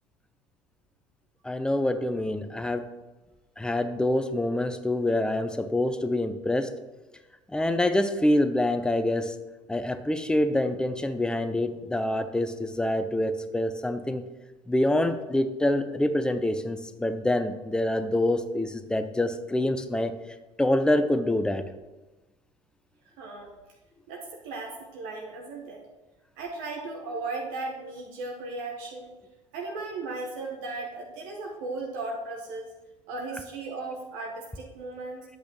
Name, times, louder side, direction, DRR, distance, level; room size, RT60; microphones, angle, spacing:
voice 1, 1.4-2.9 3.6-6.7 7.5-9.3 9.7-14.2 14.7-20.1 20.6-21.6, left 1 dB, 5° left, 10 dB, 0.6 m, -26 dB
voice 2, 23.2-23.5 24.1-25.8 26.4-29.1 29.5-32.7 33.1-35.2, right 3 dB, 60° right, 0 dB, 1.3 m, -36 dB
10.5 x 8.2 x 3.1 m, 1.1 s
figure-of-eight pair, 60°, 16 cm